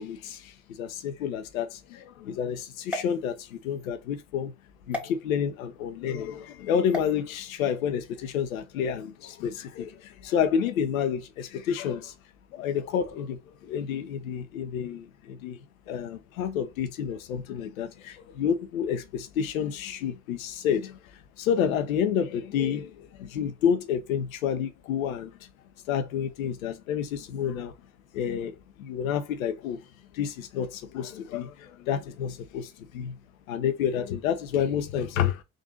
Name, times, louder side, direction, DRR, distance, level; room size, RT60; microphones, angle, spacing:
voice 1, 0.0-4.5 4.9-12.1 12.5-25.5 25.9-27.7 28.1-29.8 30.1-33.2 33.5-35.4, left 8 dB, 85° left, 0.7 m, -29 dB
sound 1, 2.8-3.9 4.9-5.1 6.9-7.1, left 1 dB, 5° right, 1.5 m, -36 dB
3.7 x 2.7 x 3.6 m
hypercardioid pair, 55°, 40 cm